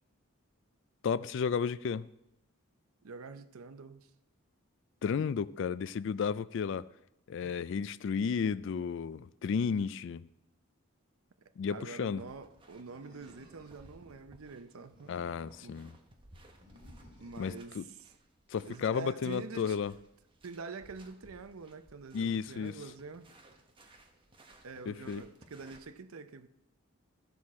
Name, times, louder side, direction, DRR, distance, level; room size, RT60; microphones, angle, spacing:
voice 1, 1.0-2.1 5.0-6.9 7.3-10.3 11.6-12.2 15.1-15.9 17.4-17.8 18.5-19.9 22.1-22.8 24.9-25.2, left 6 dB, 60° left, 0.3 m, -33 dB
voice 2, 3.0-4.1 7.4-7.5 11.7-15.1 15.6-15.8 17.2-17.9 18.6-19.8 20.4-23.3 24.6-26.5, right 4 dB, 85° right, 0.6 m, -46 dB
sound 1, 12.2-25.8, right 1 dB, 25° right, 1.0 m, -60 dB
Animal, 12.8-14.0 14.7-15.8 16.6-17.6, left 1 dB, 45° right, 3.8 m, -59 dB
14.5 x 6.3 x 4.2 m
head